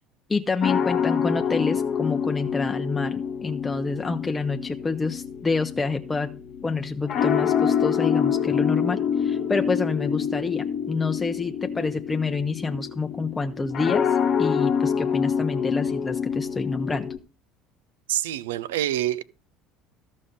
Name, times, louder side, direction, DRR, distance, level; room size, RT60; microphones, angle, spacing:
voice 1, 0.3-17.1, left 4 dB, 20° left, 0.6 m, -28 dB
sound 1, 0.6-17.2, left 7 dB, 55° left, 1.0 m, -26 dB
voice 2, 18.1-19.2, right 13 dB, 80° right, 0.4 m, -26 dB
13.5 x 5.4 x 5.2 m
hypercardioid pair, 70°, 0 cm